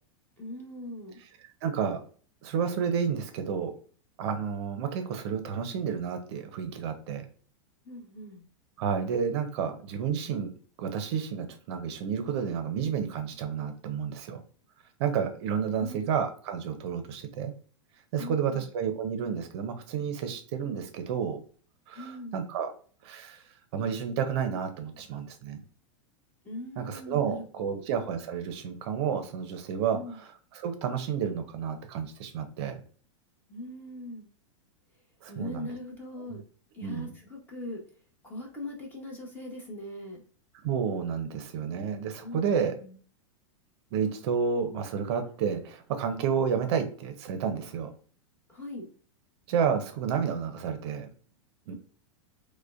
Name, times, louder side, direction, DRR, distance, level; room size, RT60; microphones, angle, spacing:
voice 1, 0.4-1.2 7.8-8.4 15.8-16.1 18.2-18.7 21.9-22.4 26.4-27.9 29.9-30.2 33.5-34.3 35.3-36.4 36.7-37.8 38.2-40.2 42.2-42.9 48.5-48.9 51.7-51.8, left 1 dB, 10° left, -2 dB, 1.0 m, -41 dB
voice 2, 1.6-2.0 2.4-3.7 4.2-7.2 8.8-10.5 10.8-14.4 15.0-17.5 18.1-21.4 21.9-22.7 23.0-23.4 23.7-25.6 26.8-32.8 35.2-35.7 36.3-36.4 36.8-37.1 40.6-42.7 43.9-47.9 49.5-51.1 51.7-51.8, right 7 dB, 55° right, 7 dB, 0.6 m, -31 dB
4.8 x 2.1 x 2.4 m, 0.43 s
hypercardioid pair, 135°, 16 cm